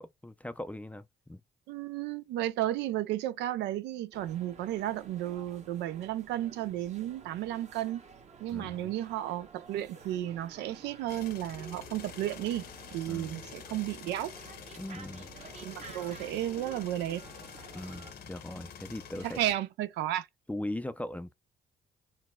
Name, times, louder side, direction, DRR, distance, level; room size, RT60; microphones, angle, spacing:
voice 1, 0.0-1.4 8.5-8.9 13.1-13.4 14.8-15.3 17.7-19.4 20.5-21.3, left 1 dB, 10° left, 0.4 m, -39 dB
voice 2, 1.7-8.0 8.4-12.7 12.9-14.3 15.6-17.2 19.2-20.3, right 13 dB, 85° right, 0.4 m, -33 dB
sound 1, 4.1-18.1, right 5 dB, 40° right, 0.9 m, -52 dB
sound 2, 11.1-19.6, left 7 dB, 65° left, 0.9 m, -48 dB
4.0 x 2.1 x 2.2 m
supercardioid pair, 70°, 18 cm